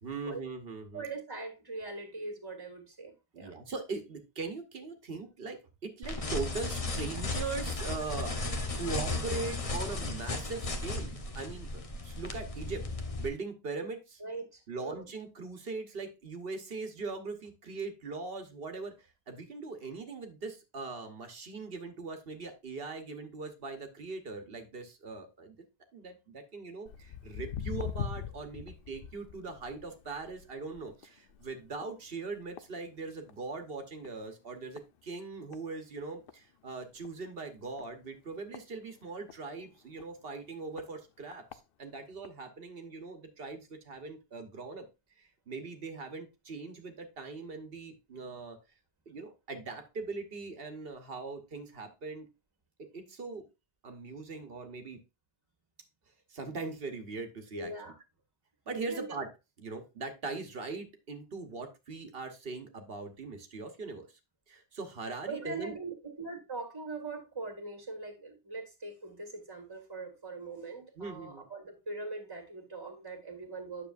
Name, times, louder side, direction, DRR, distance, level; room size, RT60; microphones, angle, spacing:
voice 1, 0.0-1.0 3.3-11.7 12.0-12.8 13.2-14.2 14.7-25.6 25.9-44.9 45.1-48.6 49.1-52.3 52.9-53.4 53.8-55.0 56.3-57.7 58.7-59.3 59.6-64.2 64.5-65.7 71.0-71.4, right 4 dB, 65° right, 1.3 m, -40 dB
voice 2, 0.9-3.5 14.2-15.0 57.5-57.9 58.9-59.1 65.3-73.9, right 3 dB, 20° right, 1.8 m, -41 dB
sound 1, 6.0-13.3, left 2 dB, 35° left, 1.0 m, -35 dB
Walk footsteps, 26.9-33.5 33.8-34.2 34.8-34.9 35.5-35.6 36.0-36.1 36.3-36.4 37.0-37.1 37.8-39.4 40.0-40.1 40.8-40.9 41.3-41.6 42.2-42.3, left 8 dB, 65° left, 0.8 m, -42 dB
9.4 x 6.7 x 2.5 m
omnidirectional pair, 1.0 m